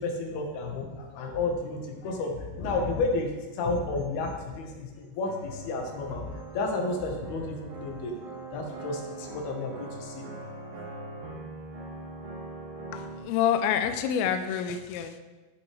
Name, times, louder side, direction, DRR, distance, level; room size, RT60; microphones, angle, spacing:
voice 1, 0.0-8.1 8.5-10.2 10.6-10.7, left 3 dB, 70° left, 1 dB, 3.0 m, -32 dB
sound 1, 5.2-13.2, right 3 dB, 65° right, 4.4 m, -42 dB
voice 2, 12.9-15.2, left 8 dB, 90° left, 8 dB, 2.2 m, -27 dB
15.0 x 6.2 x 3.3 m, 1.2 s
omnidirectional pair, 5.1 m